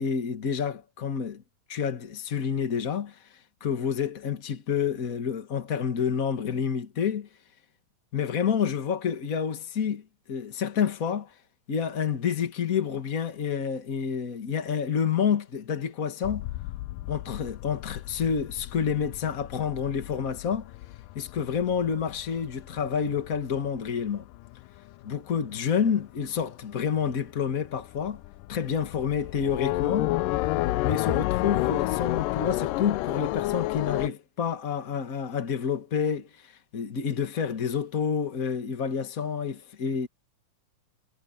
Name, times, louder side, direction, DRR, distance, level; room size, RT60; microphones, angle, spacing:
voice 1, 0.0-1.4 1.7-7.3 8.1-10.0 10.3-11.3 11.7-16.5 17.1-20.7 21.1-24.3 25.0-28.2 28.5-30.1 30.8-40.1, left 7 dB, 60° left, 0.9 m, -28 dB
sound 1, 16.2-25.1 25.5-26.2 26.5-26.6 26.9-34.1, left 18 dB, 80° left, 2.1 m, -31 dB
omnidirectional pair, 4.1 m